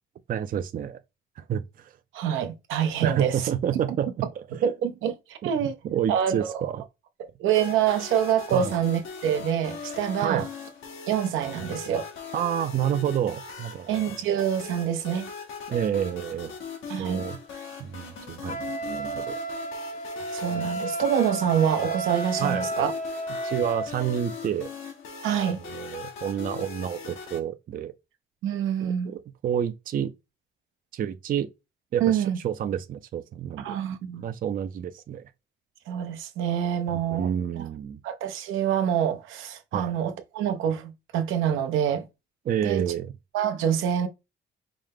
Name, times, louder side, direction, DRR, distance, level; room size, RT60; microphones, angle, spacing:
voice 1, 0.3-1.0 1.4-2.0 3.0-4.5 5.4-6.8 8.5-8.7 10.2-10.4 12.3-14.0 15.7-16.5 17.0-17.4 17.8-19.4 22.4-22.7 23.4-24.7 25.7-27.9 28.8-30.1 30.9-31.5 31.9-33.8 34.2-35.3 36.9-38.0 39.7-40.0 42.5-43.1, right 9 dB, 45° right, 0.4 m, -29 dB
voice 2, 2.1-3.4 4.5-5.7 6.1-6.6 7.4-10.5 11.1-12.1 13.9-15.3 16.9-17.2 20.2-22.9 25.2-25.6 28.4-29.1 32.0-32.4 33.6-34.2 35.9-37.3 37.6-37.7 38.0-42.1 42.6-42.8 43.3-44.1, right 9 dB, 90° right, 0.7 m, -26 dB
sound 1, 7.5-27.4, left 5 dB, 85° left, 1.0 m, -40 dB
Wind instrument woodwind instrument, 18.5-23.9, right 2 dB, 40° left, 0.8 m, -32 dB
5.0 x 2.1 x 3.5 m
cardioid pair, 90°, 20 cm